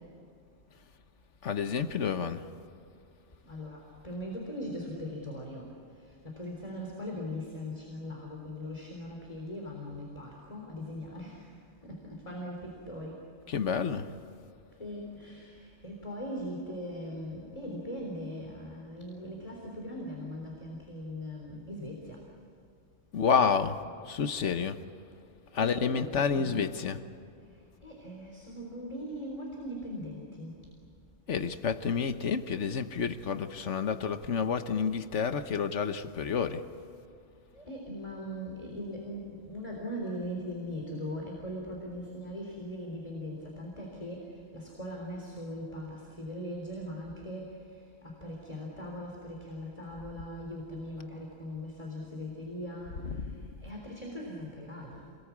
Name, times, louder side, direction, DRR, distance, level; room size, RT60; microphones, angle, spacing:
voice 1, 1.4-2.4 13.5-14.1 23.1-23.8 24.1-24.8 25.5-27.0 31.3-36.6 53.0-53.4, left 6 dB, 80° left, 9 dB, 1.4 m, -29 dB
voice 2, 3.5-5.7 6.2-11.4 11.9-13.1 14.8-22.2 25.6-26.7 27.8-30.5 37.5-44.3 44.5-47.5 48.0-52.9 53.6-55.1, equal, 30° left, -1 dB, 3.9 m, -40 dB
28.5 x 21.5 x 8.6 m, 2.5 s
omnidirectional pair, 1.2 m